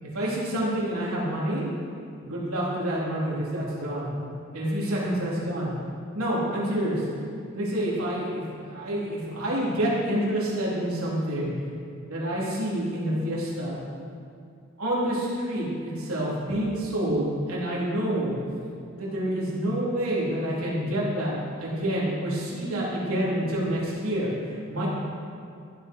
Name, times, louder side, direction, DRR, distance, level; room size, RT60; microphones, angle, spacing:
voice 1, 0.1-1.7 2.2-4.1 4.5-5.7 6.1-7.0 7.5-11.5 12.1-13.8 14.8-18.4 19.0-21.3 21.6-24.9, right 1 dB, 85° right, -6 dB, 4.0 m, -28 dB
14.0 x 13.0 x 4.7 m, 2.4 s
head